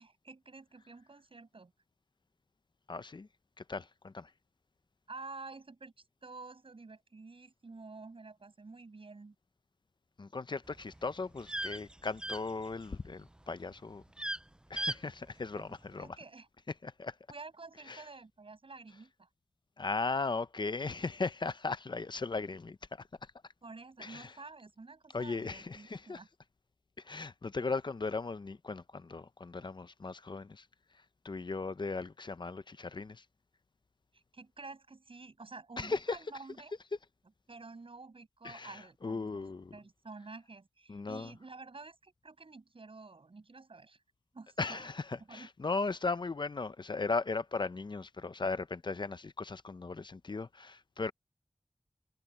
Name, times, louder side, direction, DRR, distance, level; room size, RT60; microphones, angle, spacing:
voice 1, 0.0-1.7 5.1-5.9 6.2-9.4 15.5-15.7 15.9-16.5 17.3-19.3 23.6-26.3 34.1-36.7 37.5-39.5 39.7-44.0 44.3-44.8 45.3-45.5, right 3 dB, 70° right, 7.0 m, -50 dB
voice 2, 2.9-3.3 3.6-4.3 10.2-14.0 14.7-16.2 16.8-17.2 17.9-18.1 19.8-23.3 24.0-24.4 25.1-26.2 27.0-30.7 30.9-33.2 35.8-36.2 38.4-39.8 40.9-41.3 44.6-51.1, left 3 dB, 55° left, 0.6 m, -37 dB
sound 1, 10.7-13.1 13.4-13.7 14.0-14.4 14.8-15.0 15.3-15.4, right 1 dB, 10° right, 0.4 m, -38 dB
wide cardioid pair, 65°, 10 cm